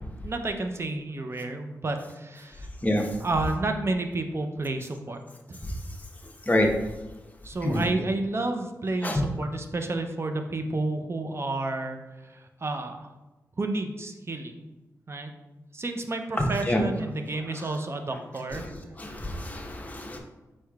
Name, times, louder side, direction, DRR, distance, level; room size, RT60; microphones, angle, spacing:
voice 1, 0.2-2.7 3.2-5.2 5.5-5.6 7.4-13.1 13.6-14.6 15.1-15.3 15.7-18.6, right 2 dB, 40° right, 6 dB, 0.6 m, -31 dB
voice 2, 16.4-16.9 19.0-20.2, left 1 dB, 25° left, 1 dB, 0.9 m, -26 dB
4.6 x 4.3 x 2.3 m, 1.1 s
cardioid pair, 45°, 7 cm